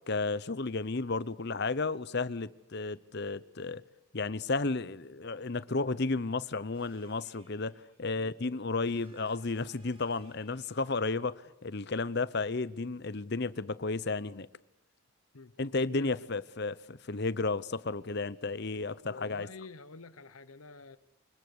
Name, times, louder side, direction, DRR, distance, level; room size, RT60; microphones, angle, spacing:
voice 1, 0.1-3.8 4.1-7.7 8.0-11.4 11.6-14.5 15.6-19.5, left 3 dB, 50° left, 0.8 m, -33 dB
sound 1, 6.7-8.3 8.8-11.4 13.7-13.8 15.5-15.6 16.1-16.2, right 1 dB, 25° right, 5.1 m, -65 dB
voice 2, 15.9-16.3 19.0-21.0, left 3 dB, 80° left, 1.1 m, -48 dB
25.5 x 21.5 x 8.0 m
head